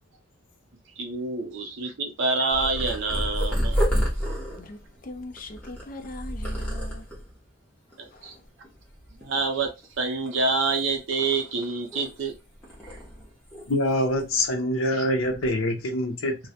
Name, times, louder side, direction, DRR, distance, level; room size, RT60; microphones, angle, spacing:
voice 1, 1.0-3.8 8.0-8.3 9.2-9.7 10.0-12.3 12.9-13.0 14.9-15.0, right 3 dB, 65° right, 0.5 m, -27 dB
Purr, 2.5-7.3 7.9-8.4 8.6-9.9 10.3-12.3 12.6-13.9 14.2-14.5 15.2-15.5, equal, 5° left, 0.8 m, -30 dB
voice 2, 4.6-7.1 8.1-8.4, left 2 dB, 40° left, 0.4 m, -41 dB
voice 3, 13.7-16.4, left 1 dB, 75° left, 0.6 m, -25 dB
2.2 x 2.0 x 2.7 m
head